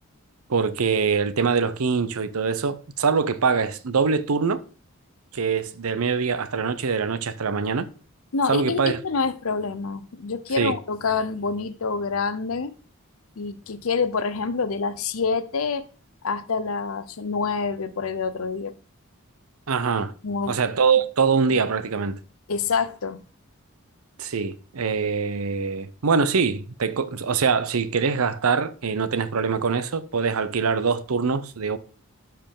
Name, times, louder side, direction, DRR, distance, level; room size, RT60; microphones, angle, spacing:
voice 1, 0.5-4.6 5.3-7.9 8.5-9.0 10.6-10.8 19.7-20.1 20.5-22.2 24.2-31.8, right 5 dB, 90° right, 0.7 m, -23 dB
voice 2, 8.3-12.8 13.4-15.8 16.2-18.7 20.2-20.6 22.5-23.2, left 4 dB, 80° left, 0.7 m, -27 dB
12.0 x 4.7 x 3.7 m
head